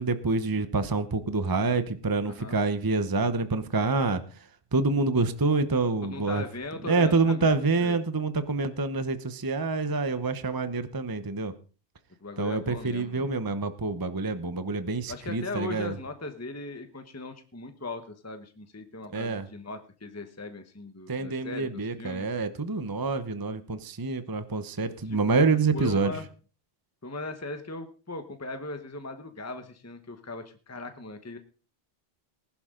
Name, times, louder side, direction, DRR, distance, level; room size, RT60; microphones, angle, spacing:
voice 1, 0.0-4.2 4.7-6.4 6.8-11.5 12.4-15.9 19.1-19.5 21.1-26.2, right 3 dB, 20° right, 11 dB, 0.8 m, -27 dB
voice 2, 2.2-2.6 6.0-7.5 7.8-8.0 12.2-13.3 15.1-22.3 25.0-25.5 25.7-26.3 27.0-31.4, left 2 dB, 15° left, 8 dB, 1.1 m, -39 dB
19.5 x 11.5 x 3.8 m, 0.38 s
omnidirectional pair, 1.2 m